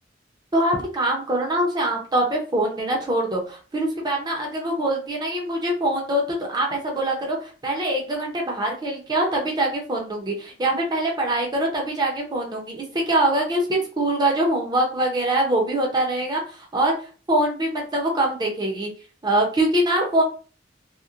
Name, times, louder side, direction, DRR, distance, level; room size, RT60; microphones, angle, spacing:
voice 1, 0.5-16.9 17.3-18.9 19.2-20.2, right 1 dB, 25° right, 0 dB, 0.6 m, -23 dB
2.8 x 2.1 x 2.4 m, 0.38 s
head